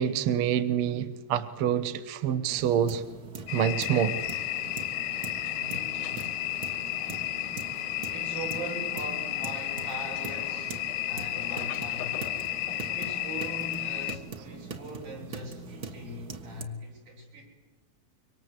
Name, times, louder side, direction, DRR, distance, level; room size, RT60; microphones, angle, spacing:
voice 1, 0.0-3.0 3.5-4.2, right 9 dB, 60° right, 1.7 m, -26 dB
sound 1, 2.5-16.7, right 5 dB, 45° right, 1.5 m, -43 dB
sound 2, 3.5-14.2, left 14 dB, 85° left, 2.5 m, -33 dB
voice 2, 5.6-6.3 8.0-12.2 12.9-17.4, right 1 dB, 75° right, 8.6 m, -41 dB
26.0 x 24.0 x 8.1 m
omnidirectional pair, 3.5 m